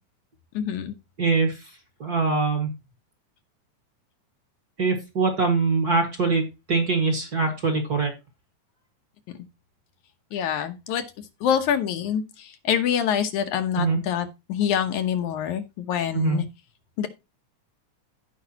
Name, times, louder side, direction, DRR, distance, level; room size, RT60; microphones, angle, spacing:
voice 1, 0.5-0.9 10.3-11.0 11.4-16.5 17.0-17.1, left 9 dB, 80° left, 2.5 m, -26 dB
voice 2, 1.2-1.6 2.0-2.7 4.8-6.4 6.7-8.1 13.8-14.0 16.1-16.4, right 4 dB, 35° right, 1.9 m, -23 dB
16.0 x 5.3 x 2.9 m
omnidirectional pair, 3.4 m